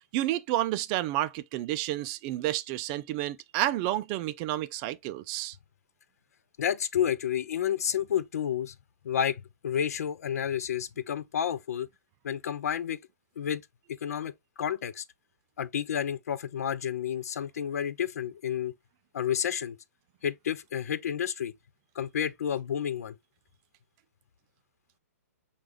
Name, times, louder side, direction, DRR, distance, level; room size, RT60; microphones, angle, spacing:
voice 1, 0.1-5.6, right 14 dB, 30° right, 0.3 m, -30 dB
voice 2, 6.6-8.7 9.0-11.9 12.2-13.0 13.4-13.6 14.0-14.3 14.6-15.0 15.6-18.7 19.1-19.8 20.2-21.5 22.0-23.2, left 9 dB, 70° left, 0.5 m, -30 dB
6.0 x 2.4 x 3.3 m
hypercardioid pair, 135°, 9 cm